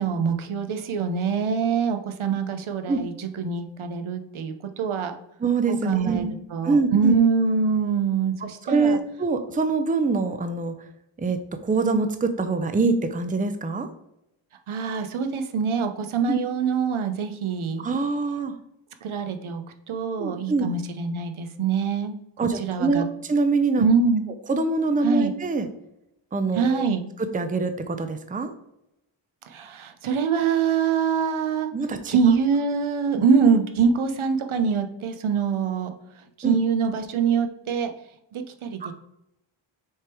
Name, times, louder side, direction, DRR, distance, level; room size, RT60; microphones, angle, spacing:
voice 1, 0.0-5.1 5.7-6.2 6.5-9.0 14.7-17.8 19.0-22.1 22.6-23.0 23.8-24.2 25.0-25.3 26.5-27.1 29.5-31.7 32.1-35.9 36.4-37.9 38.3-38.9, right 5 dB, 75° right, 7 dB, 0.8 m, -24 dB
voice 2, 5.4-6.3 6.6-7.2 8.7-10.7 11.2-13.9 16.3-16.4 17.8-18.5 20.2-20.7 22.4-23.9 24.5-25.7 26.3-26.9 27.2-28.5 31.7-32.2 36.4-36.6, right 4 dB, 15° right, 9 dB, 0.5 m, -24 dB
6.5 x 3.5 x 4.4 m, 0.83 s
wide cardioid pair, 105°, 49 cm